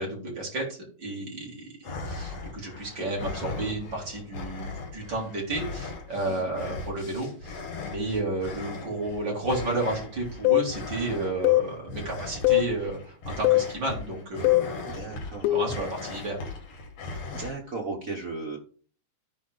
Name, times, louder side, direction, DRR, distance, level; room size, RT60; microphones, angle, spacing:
voice 1, 0.0-15.0 15.5-16.4, right 2 dB, 35° right, -3 dB, 3.7 m, -32 dB
sound 1, 1.8-17.5, left 3 dB, 60° left, 2.7 m, -39 dB
sound 2, 10.4-10.7 11.4-11.7 12.4-12.7 13.4-13.7 14.4-14.7 15.4-15.8, left 18 dB, 90° left, 2.0 m, -21 dB
voice 2, 14.9-15.6 17.3-18.6, right 3 dB, 60° right, 0 dB, 0.8 m, -36 dB
14.5 x 4.8 x 3.9 m, 0.43 s
omnidirectional pair, 3.4 m